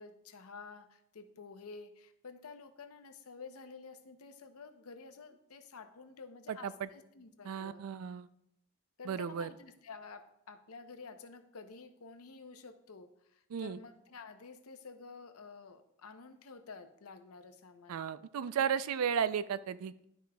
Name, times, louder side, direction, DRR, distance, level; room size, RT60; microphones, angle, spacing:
voice 1, 0.0-7.8 9.0-18.1, left 4 dB, 90° left, 8 dB, 0.7 m, -51 dB
voice 2, 6.5-6.9 7.5-8.3 9.1-9.5 13.5-13.8 17.9-20.0, right 7 dB, 85° right, 15 dB, 0.4 m, -34 dB
12.0 x 5.0 x 2.2 m, 0.78 s
head